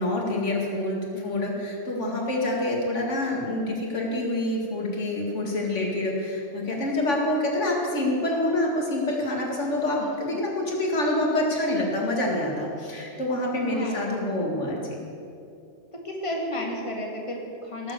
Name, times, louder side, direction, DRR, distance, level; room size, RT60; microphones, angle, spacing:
voice 1, 0.0-14.9, left 1 dB, 80° left, -1 dB, 2.5 m, -27 dB
voice 2, 1.1-1.6 2.0-2.3 10.0-10.1 13.6-14.2 16.0-17.9, left 1 dB, 25° left, -1 dB, 2.0 m, -33 dB
17.5 x 7.6 x 7.2 m, 2.5 s
omnidirectional pair, 1.2 m